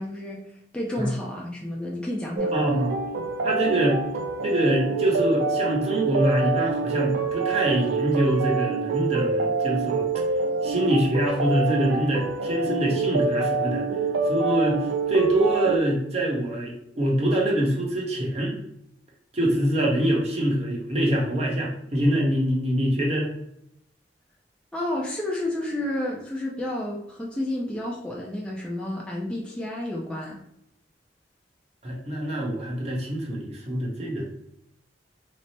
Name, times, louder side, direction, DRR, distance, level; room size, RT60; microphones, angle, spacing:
voice 1, 0.0-2.5 24.7-30.4, left 1 dB, 5° left, -3 dB, 0.4 m, -31 dB
sound 1, 2.4-15.8, right 4 dB, 75° right, 0.4 m, -26 dB
voice 2, 2.5-2.9 3.4-4.0 4.4-10.1 10.6-13.9 14.2-18.6 19.3-23.3 31.8-34.2, right 1 dB, 35° right, -3 dB, 0.9 m, -24 dB
3.2 x 2.0 x 4.0 m, 0.77 s
head